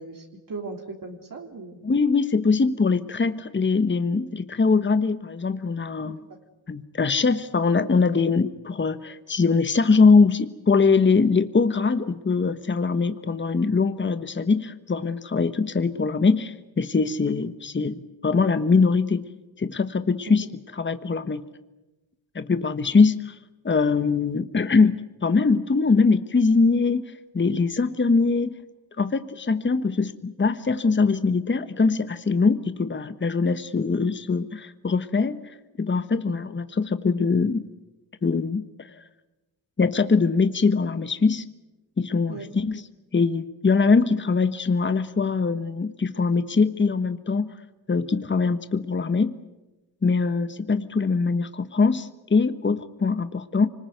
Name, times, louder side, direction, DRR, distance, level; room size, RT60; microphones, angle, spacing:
voice 1, 0.0-1.8 6.0-6.1 42.3-42.5, right 3 dB, 45° right, 2 dB, 3.5 m, -38 dB
voice 2, 1.8-6.2 6.7-19.2 19.6-20.5 20.8-21.5 22.3-23.3 23.6-28.5 29.0-35.4 35.8-37.7 38.2-38.9 39.8-41.4 42.0-42.8 43.1-47.5 47.9-49.4 50.0-53.7, left 4 dB, 25° left, 12 dB, 1.3 m, -22 dB
25.0 x 20.0 x 9.3 m, 1.1 s
cardioid pair, 65°, 45 cm